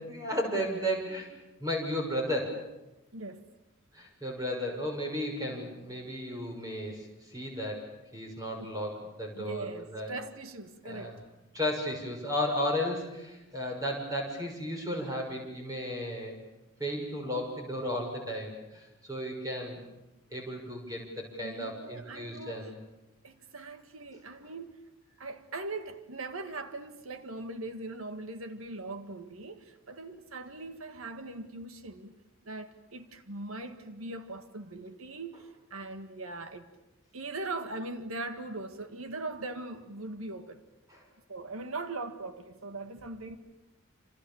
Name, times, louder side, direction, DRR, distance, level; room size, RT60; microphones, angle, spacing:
voice 1, 0.1-1.3 1.6-2.6 3.9-7.9 8.1-10.1 10.8-11.1 11.5-16.4 16.8-19.8 20.3-22.7 40.9-41.0, equal, 15° right, 6.4 m, -34 dB
voice 2, 3.1-3.5 8.6-8.7 9.3-11.2 21.4-22.7 23.2-24.8 25.2-32.2 32.4-36.6 37.1-40.6 41.3-43.4, right 2 dB, 85° right, 1.8 m, -40 dB
28.5 x 27.5 x 7.2 m
head